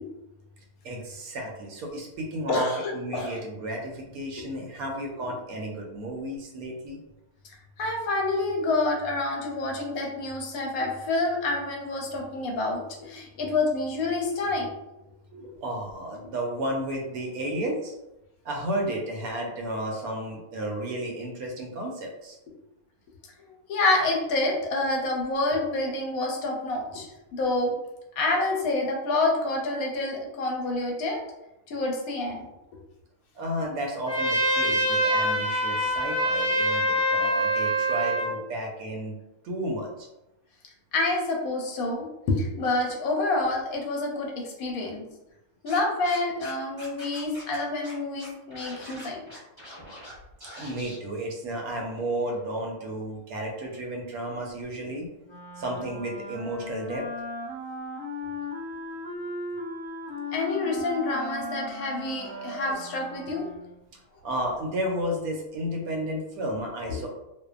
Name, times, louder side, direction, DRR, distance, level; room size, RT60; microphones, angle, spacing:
voice 1, 0.8-2.7 2.9-7.0 15.3-17.9 18.4-22.4 33.3-39.1 39.4-40.1 50.6-55.1 55.6-57.1 64.2-67.1, right 1 dB, 75° right, 0 dB, 1.0 m, -32 dB
voice 2, 2.5-3.4 7.8-14.7 23.5-27.7 28.2-31.2 31.7-32.5 40.9-45.0 45.6-49.2 60.3-63.5 66.9-67.0, left 2 dB, 75° left, 0 dB, 1.0 m, -28 dB
Trumpet, 34.1-38.3, equal, 10° left, 0.3 m, -24 dB
Scratching (performance technique), 45.7-46.5 46.8-47.6 47.8-47.9 48.2-50.1 50.4-51.0, equal, 20° right, 0.8 m, -43 dB
Wind instrument woodwind instrument, 55.2-63.8, left 1 dB, 35° left, 0.8 m, -37 dB
2.6 x 2.2 x 2.3 m, 0.91 s
omnidirectional pair, 1.6 m